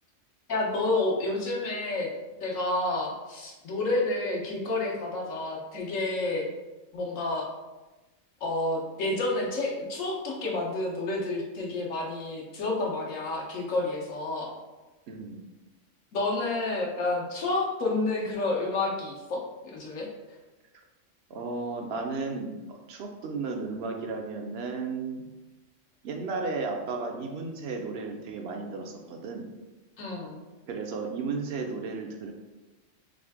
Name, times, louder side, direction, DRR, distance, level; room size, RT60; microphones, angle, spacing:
voice 1, 0.5-2.1 2.4-6.4 6.9-7.5 8.4-14.5 16.1-19.4 19.7-20.1 30.0-30.4, left 2 dB, 90° left, -2 dB, 1.3 m, -29 dB
voice 2, 15.1-15.4 21.3-25.3 26.0-29.5 30.7-32.3, right 4 dB, 65° right, 3 dB, 0.8 m, -34 dB
3.8 x 3.2 x 3.4 m, 1.1 s
omnidirectional pair, 1.3 m